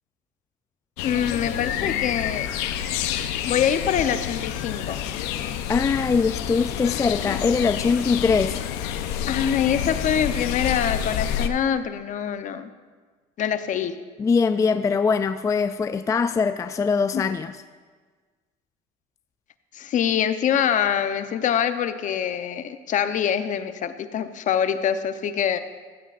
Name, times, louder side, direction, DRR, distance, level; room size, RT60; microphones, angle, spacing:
sound 1, 1.0-11.5, left 10 dB, 85° left, 0.7 m, -28 dB
voice 1, 1.0-2.5 3.4-5.0 9.3-12.7 13.4-14.0 17.1-17.2 19.7-25.6, left 8 dB, 50° left, 10 dB, 0.8 m, -24 dB
voice 2, 5.7-8.6 14.2-17.6, left 5 dB, 20° left, 11 dB, 0.3 m, -22 dB
15.5 x 14.5 x 2.5 m, 1.5 s
supercardioid pair, 100°, 16 cm